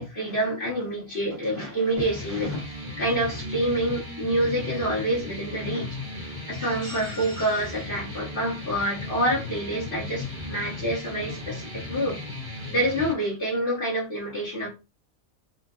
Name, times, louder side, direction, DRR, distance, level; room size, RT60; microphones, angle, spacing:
voice 1, 0.0-6.0 6.5-12.2 12.7-14.7, right 1 dB, 45° left, 1.7 m, -27 dB
sound 1, 2.0-13.1, left 2 dB, 25° right, 1.3 m, -36 dB
4.4 x 2.5 x 2.5 m
omnidirectional pair, 1.3 m